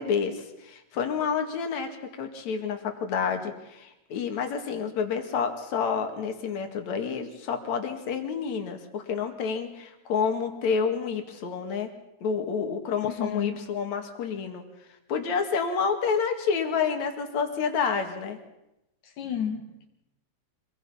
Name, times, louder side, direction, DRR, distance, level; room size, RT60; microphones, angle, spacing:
voice 1, 0.0-11.9 12.2-14.6 15.1-18.4, left 6 dB, 70° left, 5 dB, 3.4 m, -29 dB
voice 2, 13.0-13.7 19.0-19.8, left 8 dB, 85° left, 2 dB, 3.1 m, -32 dB
25.5 x 21.5 x 5.7 m, 0.91 s
omnidirectional pair, 3.4 m